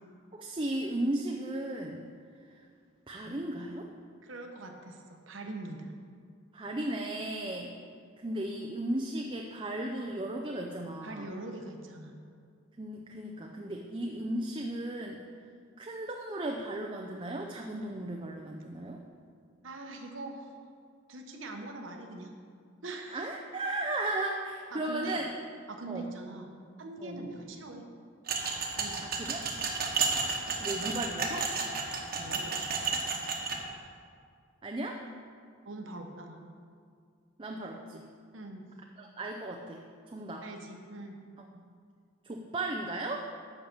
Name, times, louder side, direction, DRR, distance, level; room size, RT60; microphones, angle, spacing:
voice 1, 0.3-2.1 3.1-3.9 6.5-7.7 8.2-11.3 12.8-15.2 15.8-19.0 23.1-25.3 25.9-26.1 27.0-27.2 29.0-29.4 30.6-31.5 34.6-35.0 37.4-38.0 39.0-40.4 41.5-41.6 42.2-43.2, right 1 dB, 25° right, 1 dB, 0.5 m, -35 dB
voice 2, 4.2-5.9 11.0-12.2 19.6-20.5 21.1-22.3 22.8-23.3 24.7-25.3 25.7-26.5 26.8-27.8 28.8-29.1 32.2-32.5 35.6-36.4 38.3-38.6 40.4-41.2, right 2 dB, 80° right, 2 dB, 1.1 m, -42 dB
sound 1, 28.3-33.6, right 4 dB, 50° right, 1.2 m, -32 dB
8.7 x 5.8 x 6.7 m, 2.2 s
head